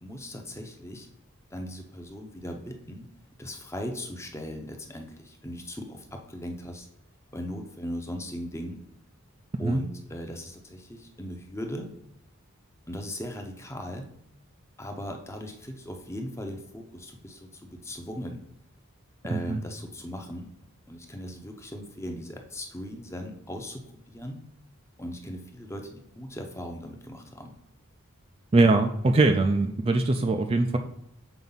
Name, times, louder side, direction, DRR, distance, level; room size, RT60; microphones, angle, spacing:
voice 1, 0.0-1.1 1.5-3.1 3.4-6.9 7.3-8.8 9.6-11.9 12.9-14.1 14.8-18.4 19.2-20.5 20.9-24.4 25.0-27.5, equal, 15° left, 3 dB, 0.7 m, -38 dB
voice 2, 28.5-30.8, right 2 dB, 25° right, 5 dB, 0.4 m, -22 dB
7.0 x 4.6 x 4.0 m, 0.81 s
head